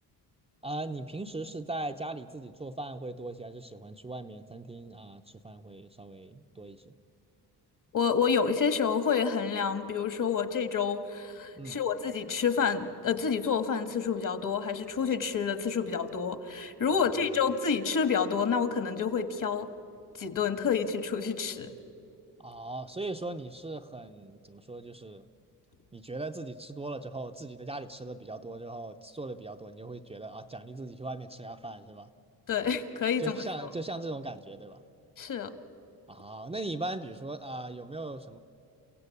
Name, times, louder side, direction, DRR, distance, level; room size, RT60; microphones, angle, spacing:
voice 1, 0.6-6.9 11.6-11.8 17.0-17.2 22.4-25.3 25.9-32.1 33.2-34.8 36.1-38.4, right 2 dB, 15° right, 5 dB, 0.7 m, -39 dB
voice 2, 7.9-19.7 20.2-21.7 32.5-33.4 35.2-35.5, left 6 dB, 50° left, 10 dB, 1.6 m, -28 dB
30.0 x 16.0 x 8.4 m, 2.7 s
cardioid pair, 110°, 39 cm